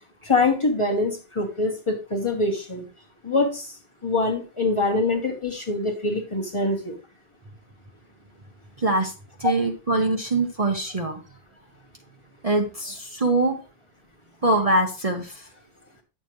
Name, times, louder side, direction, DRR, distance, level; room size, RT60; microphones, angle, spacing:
voice 1, 0.2-2.8 3.2-3.8 4.0-7.0 9.4-9.5, left 3 dB, 25° left, 1 dB, 1.4 m, -24 dB
voice 2, 8.8-9.1 9.4-11.2 12.4-13.6 14.4-15.4, right 2 dB, 35° right, 2 dB, 1.0 m, -23 dB
9.8 x 6.9 x 3.1 m, 0.31 s
omnidirectional pair, 1.2 m